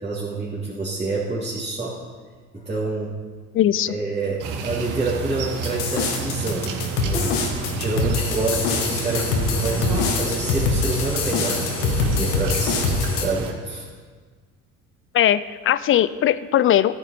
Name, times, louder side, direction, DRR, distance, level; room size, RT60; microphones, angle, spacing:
voice 1, 0.0-2.0 2.5-3.1 3.9-7.4 7.7-12.8 13.1-13.9, right 3 dB, 15° right, -9 dB, 3.1 m, -27 dB
sound 1, 2.5-3.2 7.1-8.1, equal, 20° left, 3.2 m, -36 dB
voice 2, 3.5-4.0 15.1-17.0, left 11 dB, 35° left, 17 dB, 0.5 m, -19 dB
sound 2, 4.4-13.5, right 4 dB, 55° right, 1.7 m, -30 dB
sound 3, 5.6-13.3, left 4 dB, 70° left, 1.7 m, -24 dB
14.0 x 7.8 x 4.5 m, 1.5 s
hypercardioid pair, 60°, 38 cm